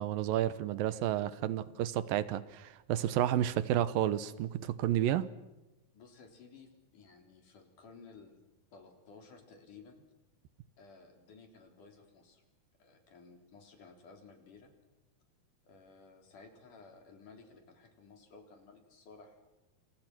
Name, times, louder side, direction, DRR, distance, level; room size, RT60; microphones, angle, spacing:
voice 1, 0.0-5.3, right 12 dB, 85° right, 2.8 m, -31 dB
voice 2, 1.4-1.9 5.9-8.4 8.7-10.0 10.8-12.4 12.8-14.7 15.6-19.5, left 4 dB, 65° left, 5.1 m, -56 dB
28.0 x 27.5 x 6.1 m
omnidirectional pair, 4.0 m